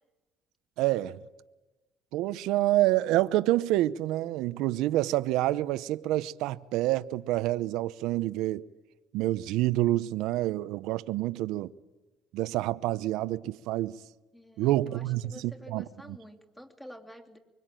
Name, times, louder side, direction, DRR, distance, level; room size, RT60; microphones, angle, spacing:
voice 1, 0.8-1.2 2.1-8.7 9.1-11.7 12.3-14.0 14.6-15.8, right 16 dB, 80° right, 0.8 m, -27 dB
voice 2, 14.3-17.4, equal, 10° left, 3.0 m, -49 dB
25.0 x 24.0 x 9.1 m
cardioid pair, 115°, 0 cm